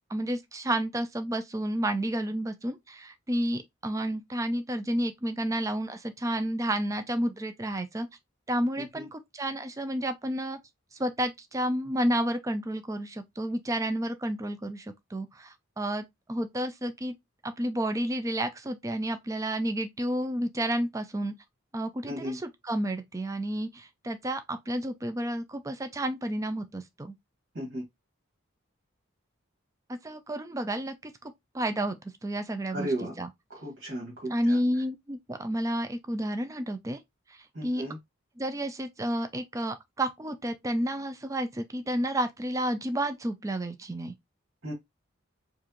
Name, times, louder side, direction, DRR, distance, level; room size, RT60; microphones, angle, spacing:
voice 1, 0.1-8.1 8.5-10.6 10.9-17.1 17.4-21.3 21.7-27.1 29.9-32.9 33.2-33.3 34.3-37.0 37.3-37.8 38.4-44.1, right 1 dB, 15° right, 0.4 m, -31 dB
voice 2, 8.8-9.1 22.1-22.4 27.5-27.8 32.7-33.2 33.5-34.6 37.5-38.0 44.6-44.7, right 1 dB, 55° right, 2.0 m, -35 dB
4.8 x 2.5 x 2.9 m
head